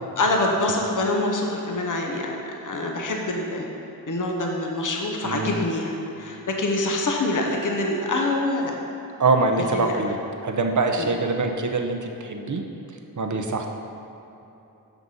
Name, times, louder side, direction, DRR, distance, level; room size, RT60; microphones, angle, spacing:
voice 1, 0.2-3.7 4.1-8.7 9.6-9.9 11.0-11.1, left 2 dB, 55° left, 1 dB, 0.9 m, -25 dB
voice 2, 5.2-5.6 9.2-10.2 10.4-12.6 13.2-13.7, right 3 dB, 55° right, 4 dB, 0.8 m, -24 dB
6.8 x 6.1 x 5.5 m, 2.9 s
wide cardioid pair, 75°, 36 cm